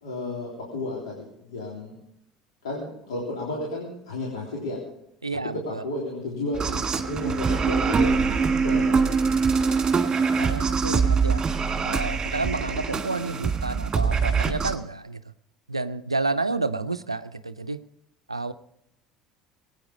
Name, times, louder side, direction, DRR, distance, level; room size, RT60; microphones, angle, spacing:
voice 1, 0.0-2.0 2.6-4.8 5.4-9.4, left 2 dB, 70° left, -4 dB, 3.5 m, -33 dB
voice 2, 5.2-5.8 10.4-11.4 11.9-15.2 15.7-17.8 18.3-18.5, right 3 dB, 90° right, 12 dB, 0.5 m, -30 dB
sound 1, 6.5-14.7, right 5 dB, 25° right, 1.9 m, -23 dB
22.0 x 9.2 x 5.3 m, 0.78 s
figure-of-eight pair, 65°, 3 cm